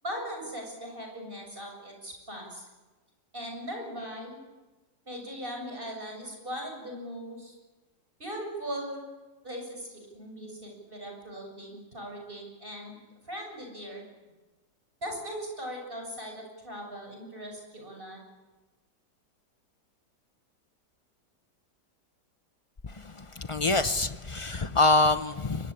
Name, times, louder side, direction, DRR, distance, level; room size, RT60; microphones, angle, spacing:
voice 1, 0.0-2.7 3.3-4.4 5.1-7.5 8.2-9.0 9.4-13.0 13.2-14.0 15.0-18.2, equal, 30° right, 2 dB, 7.6 m, -39 dB
voice 2, 22.8-25.7, left 2 dB, 35° left, 11 dB, 0.5 m, -26 dB
24.5 x 21.5 x 8.7 m, 1.2 s
omnidirectional pair, 1.8 m